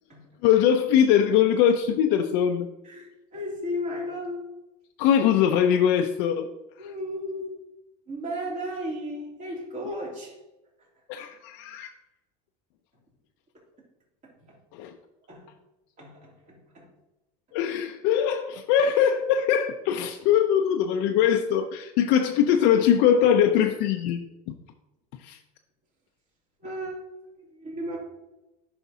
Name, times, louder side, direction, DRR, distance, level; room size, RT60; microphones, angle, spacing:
voice 1, 0.4-2.7 5.0-6.5 6.8-6.9 11.1-11.9 14.7-15.0 17.5-24.5 25.2-25.4, left 9 dB, 60° left, 5 dB, 0.5 m, -22 dB
voice 2, 2.9-4.5 6.8-7.5 8.1-10.3 15.3-15.5 16.0-16.8 26.6-27.0 27.5-28.0, equal, 35° right, -3 dB, 2.7 m, -34 dB
9.8 x 5.8 x 2.7 m, 0.99 s
supercardioid pair, 140°, 21 cm